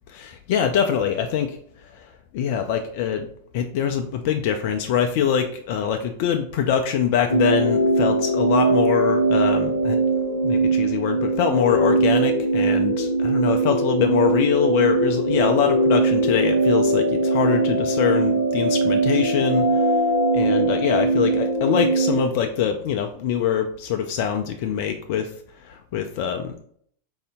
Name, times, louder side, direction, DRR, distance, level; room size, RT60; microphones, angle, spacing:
voice 1, 0.1-1.6 1.9-3.3 3.5-10.0 10.4-20.0 20.3-25.3 25.6-26.6, left 8 dB, 50° left, 6 dB, 0.4 m, -24 dB
sound 1, 7.3-22.2, right 2 dB, 65° left, 0.7 m, -21 dB
4.2 x 2.7 x 3.5 m, 0.63 s
figure-of-eight pair, 90°, 0 cm